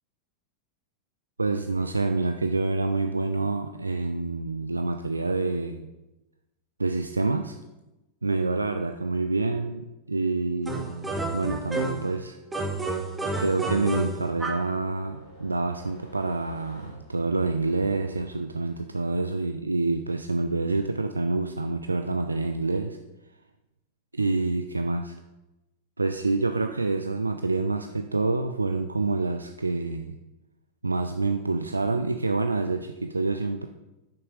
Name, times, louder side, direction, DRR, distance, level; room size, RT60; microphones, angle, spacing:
voice 1, 1.4-5.9 6.8-7.5 8.2-12.4 13.4-23.0 24.1-25.1 26.0-30.1 30.8-33.7, right 3 dB, 80° right, 7 dB, 0.4 m, -27 dB
sound 1, 10.6-12.1 12.5-14.7, right 2 dB, 10° right, 0.9 m, -30 dB
sound 2, 13.3-18.4, right 1 dB, 45° left, 2.7 m, -51 dB
6.3 x 5.9 x 4.8 m, 1.0 s
figure-of-eight pair, 90°, 0 cm